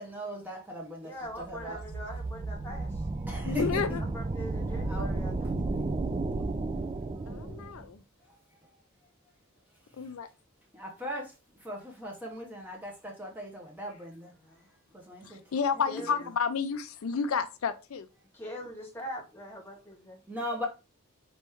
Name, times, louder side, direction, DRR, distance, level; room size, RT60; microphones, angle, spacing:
voice 1, 0.0-1.1 1.4-1.8 3.3-4.0 4.8-5.1 10.7-11.3 11.6-14.3 14.9-15.4 20.3-20.7, equal, 10° right, 0.9 m, -38 dB
voice 2, 1.0-3.0 4.0-5.6 14.4-14.7 15.9-16.2 18.3-20.2, equal, 10° left, 1.5 m, -42 dB
sound 1, 1.3-7.8, right 2 dB, 25° right, 0.3 m, -33 dB
voice 3, 3.4-4.0 7.3-8.0 10.0-10.3 15.2-18.1, left 6 dB, 80° left, 0.4 m, -31 dB
4.2 x 3.1 x 3.5 m
head